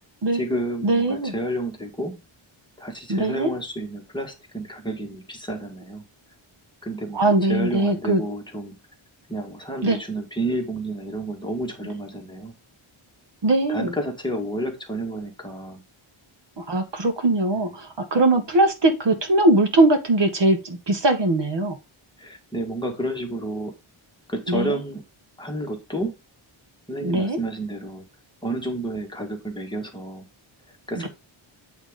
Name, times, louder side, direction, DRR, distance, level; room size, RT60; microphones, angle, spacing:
voice 1, 0.3-2.2 2.8-6.0 6.8-8.8 9.3-12.5 13.7-15.8 17.5-17.7 22.2-23.7 24.3-25.0 25.4-26.2 26.9-28.1 28.4-30.3 30.9-31.1, right 1 dB, 10° left, 1.7 m, -30 dB
voice 2, 0.8-1.3 3.1-3.5 7.1-8.2 9.8-10.0 13.4-13.9 16.6-21.8 24.5-24.8 27.0-27.4 31.0-31.1, right 2 dB, 55° right, 1.8 m, -21 dB
9.0 x 3.6 x 5.1 m
wide cardioid pair, 155°, 50 cm